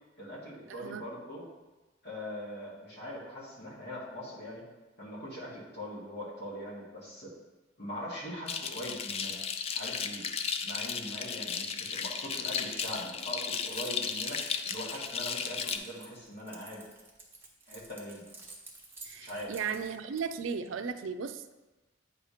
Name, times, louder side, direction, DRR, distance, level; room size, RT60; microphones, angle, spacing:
voice 1, 0.2-1.4 2.0-4.6 5.0-7.3 7.8-9.4 9.7-10.3 10.6-16.8 17.7-18.2 19.2-19.5, equal, 60° left, -5 dB, 2.0 m, -41 dB
voice 2, 0.7-1.0 19.0-21.5, right 6 dB, 85° right, 9 dB, 0.4 m, -36 dB
sound 1, 8.5-15.8, left 6 dB, 30° left, 0.3 m, -35 dB
Keys jangling, 12.8-20.5, right 3 dB, 10° right, 0.8 m, -50 dB
8.6 x 2.9 x 4.9 m, 1.1 s
head